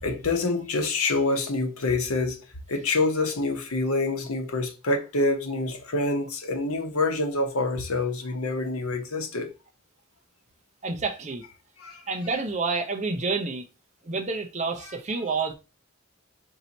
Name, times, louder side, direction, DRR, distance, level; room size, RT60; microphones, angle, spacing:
voice 1, 0.0-9.5 11.8-12.0, left 2 dB, 80° left, 1.0 m, -26 dB
voice 2, 10.8-11.4 12.1-13.6 14.0-15.5, right 4 dB, 30° right, 0.6 m, -28 dB
4.4 x 2.7 x 4.0 m
head